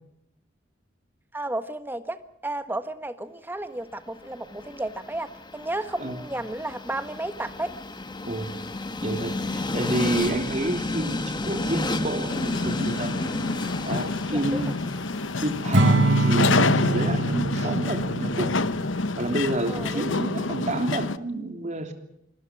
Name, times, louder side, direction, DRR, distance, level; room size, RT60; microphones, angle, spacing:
voice 1, 1.3-7.8 14.3-14.7 19.7-20.3, right 2 dB, 10° right, 1.4 m, -33 dB
Train, 4.1-20.1, left 2 dB, 25° left, 1.4 m, -33 dB
voice 2, 9.0-13.1 13.8-14.8 15.4-18.5 19.2-21.9, right 1 dB, 40° right, 3.2 m, -29 dB
sound 1, 12.3-21.2, left 3 dB, 90° left, 1.0 m, -27 dB
Acoustic guitar / Strum, 15.7-19.1, right 2 dB, 80° right, 3.9 m, -24 dB
26.0 x 21.0 x 6.1 m
head